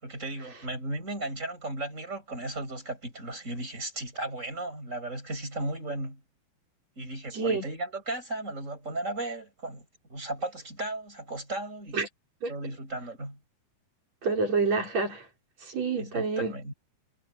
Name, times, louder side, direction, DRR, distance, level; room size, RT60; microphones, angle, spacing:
voice 1, 0.0-6.2 7.0-12.0 12.5-13.4 16.0-16.7, right 2 dB, 15° right, 7.9 m, -35 dB
voice 2, 7.3-7.6 11.9-12.1 12.4-12.5 14.2-15.3 15.6-16.6, right 4 dB, 35° right, 6.6 m, -28 dB
omnidirectional pair, 5.6 m